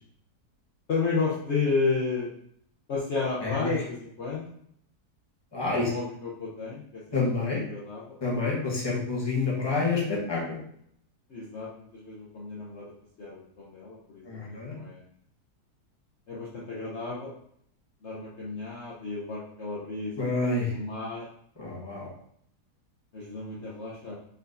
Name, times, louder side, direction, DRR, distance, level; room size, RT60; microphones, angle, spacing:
voice 1, 0.9-2.3 2.9-4.5 5.6-8.2 11.3-12.9 13.2-15.0 16.3-17.3 18.0-21.3 23.1-24.1, left 4 dB, 50° left, -5 dB, 1.0 m, -32 dB
voice 2, 3.4-3.8 5.5-5.9 7.1-7.6 8.2-10.6 14.2-14.7 20.2-20.7 21.6-22.1, left 3 dB, 15° left, -4 dB, 1.1 m, -28 dB
4.4 x 4.0 x 2.6 m, 0.68 s
omnidirectional pair, 1.7 m